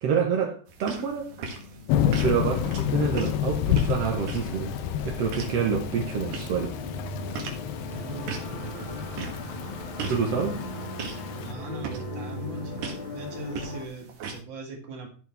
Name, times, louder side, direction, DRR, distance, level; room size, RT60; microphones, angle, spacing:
voice 1, 0.0-1.3 2.2-4.7 5.0-6.7 10.1-10.6, right 6 dB, 80° right, 1.4 m, -27 dB
sound 1, 0.7-14.4, right 5 dB, 60° right, 2.7 m, -41 dB
sound 2, 1.1-13.9, left 1 dB, 45° left, 1.9 m, -39 dB
Thunder / Rain, 1.9-11.5, left 11 dB, 85° left, 2.7 m, -30 dB
voice 2, 7.8-9.0 11.4-12.8 13.1-15.1, right 2 dB, 40° right, 1.7 m, -40 dB
13.5 x 6.2 x 3.5 m
omnidirectional pair, 4.8 m